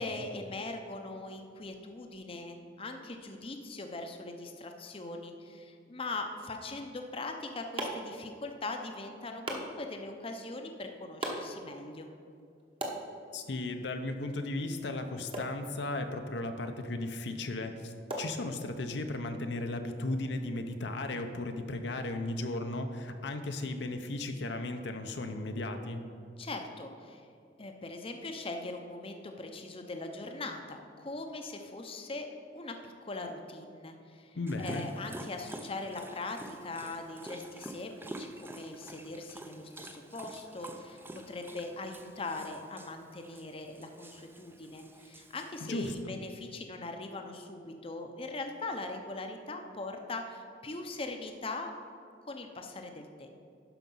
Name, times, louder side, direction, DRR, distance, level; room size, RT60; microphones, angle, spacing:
voice 1, 0.0-12.1 26.4-27.3 27.6-32.3 32.5-51.7 52.3-53.3, left 2 dB, 30° left, 4 dB, 0.6 m, -41 dB
sound 1, 7.1-19.0, right 1 dB, 30° right, 1.1 m, -44 dB
voice 2, 13.3-26.1 34.4-34.9 45.6-46.1, left 2 dB, 75° left, 6 dB, 0.7 m, -36 dB
Dog, 34.5-46.0, right 1 dB, 10° right, 0.5 m, -48 dB
12.0 x 5.1 x 5.4 m, 2.3 s
head